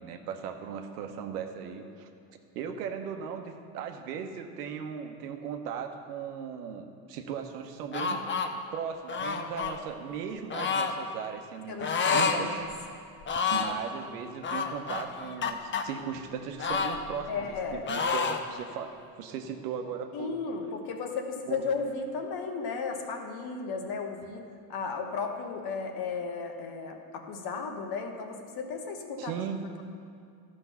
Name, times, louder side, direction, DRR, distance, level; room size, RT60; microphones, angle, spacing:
voice 1, 0.0-2.1 2.5-8.3 8.7-12.7 13.5-20.4 20.8-20.9 21.5-21.6 29.2-29.7, right 7 dB, 80° right, 5 dB, 1.0 m, -37 dB
sound 1, 7.9-8.5 9.1-9.8 10.5-10.9 11.8-12.4 12.7-12.8 13.2-13.8 14.4-15.8 16.6-17.6 17.9-18.4, left 5 dB, 25° left, 0.7 m, -29 dB
voice 2, 11.7-12.4 17.3-17.8 20.1-24.4 24.7-29.3, left 5 dB, 50° left, 4 dB, 1.3 m, -34 dB
12.0 x 5.3 x 5.6 m, 2.4 s
hypercardioid pair, 80°, 46 cm